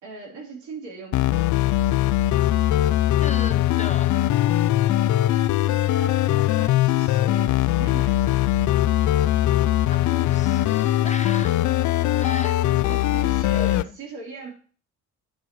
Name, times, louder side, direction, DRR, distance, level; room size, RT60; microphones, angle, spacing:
voice 1, 0.0-1.6 5.5-8.5 12.2-12.5 12.8-14.5, right 3 dB, 75° right, -1 dB, 3.6 m, -40 dB
sound 1, 1.1-13.8, left 14 dB, 70° left, 0.5 m, -21 dB
voice 2, 3.2-4.3 9.9-11.9 12.2-13.0 13.5-14.0, left 4 dB, 25° left, 9 dB, 0.7 m, -37 dB
10.0 x 6.9 x 3.1 m, 0.41 s
cardioid pair, 90°, 30 cm